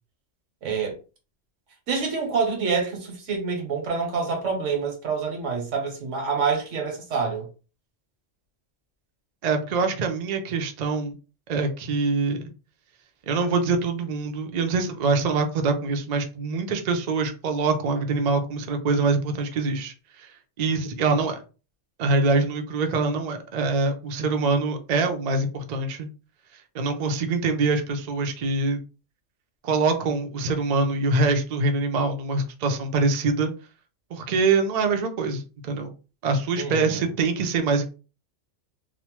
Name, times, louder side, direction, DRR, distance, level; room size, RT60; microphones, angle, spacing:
voice 1, 0.6-1.0 1.9-7.5 36.6-37.1, right 5 dB, 90° right, 1.3 m, -27 dB
voice 2, 9.4-11.2 11.5-12.5 13.3-20.3 20.6-21.4 22.0-26.1 26.7-28.8 29.6-33.5 34.1-35.9 36.2-37.9, right 3 dB, 55° right, 0.4 m, -24 dB
3.0 x 2.0 x 3.0 m
omnidirectional pair, 1.2 m